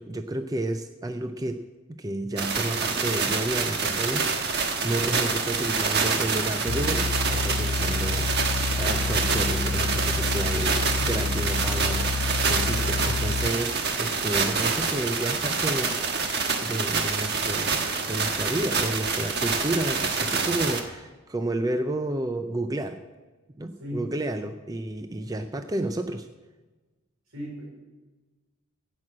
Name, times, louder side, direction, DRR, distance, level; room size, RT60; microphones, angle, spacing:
voice 1, 0.0-1.6 2.0-12.1 12.5-16.3 16.6-23.0 23.6-26.3, right 1 dB, 15° right, 8 dB, 0.4 m, -31 dB
sound 1, 2.4-20.8, right 4 dB, 50° right, 1.3 m, -27 dB
sound 2, 6.7-13.5, left 3 dB, 45° left, 0.4 m, -28 dB
voice 2, 13.0-13.3 23.8-24.1 27.3-27.7, left 1 dB, 75° right, -1 dB, 4.7 m, -37 dB
16.0 x 6.2 x 7.6 m, 1.3 s
head